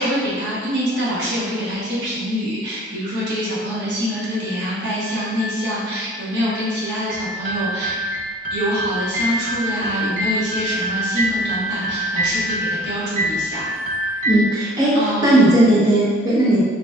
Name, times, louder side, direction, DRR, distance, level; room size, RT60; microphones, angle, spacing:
voice 1, 0.0-8.0 8.5-13.7 14.0-14.3 14.9-15.3, equal, 65° right, -7 dB, 0.9 m, -25 dB
sound 1, 4.1-14.2, left 3 dB, 10° left, 0.7 m, -35 dB
sound 2, 7.1-14.4, right 1 dB, 40° right, 0.4 m, -25 dB
voice 2, 14.2-16.6, right 1 dB, 20° right, -9 dB, 1.0 m, -16 dB
4.1 x 3.1 x 2.4 m, 1.5 s
head